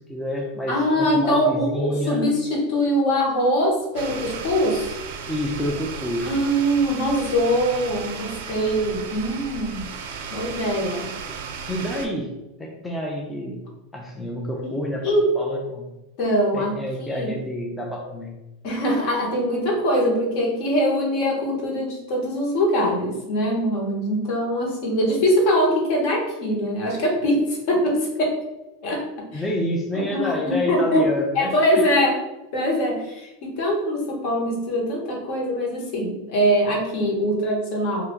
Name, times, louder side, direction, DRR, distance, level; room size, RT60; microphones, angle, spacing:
voice 1, 0.0-2.2 5.3-6.3 11.7-12.3 12.6-13.6 13.9-15.9 16.5-18.4 29.3-32.0, left 1 dB, 10° left, -1 dB, 0.4 m, -28 dB
voice 2, 0.7-5.0 6.2-9.9 10.3-11.1 14.6-14.7 15.0-15.3 16.2-16.8 17.1-17.4 18.6-28.4 28.8-29.0 29.3-29.4 29.9-31.1 31.3-32.2 32.5-38.0, equal, 55° left, -1 dB, 1.2 m, -22 dB
sound 1, 3.9-12.1, right 6 dB, 75° right, 0.4 m, -35 dB
2.8 x 2.4 x 3.7 m, 0.97 s
supercardioid pair, 135°, 0 cm